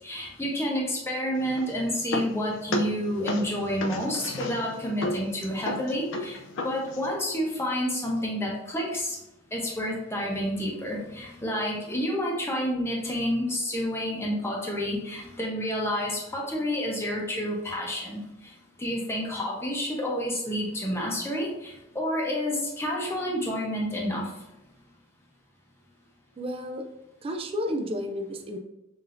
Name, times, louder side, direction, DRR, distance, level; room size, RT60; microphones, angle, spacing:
voice 1, 0.0-9.2 9.5-18.2 18.8-24.3, equal, 15° left, -2 dB, 0.8 m, -29 dB
sound 1, 1.4-7.2, left 2 dB, 70° left, 0.4 m, -34 dB
voice 2, 26.4-26.9 27.2-28.6, equal, 30° right, 3 dB, 0.3 m, -31 dB
5.8 x 2.6 x 2.5 m, 0.94 s
head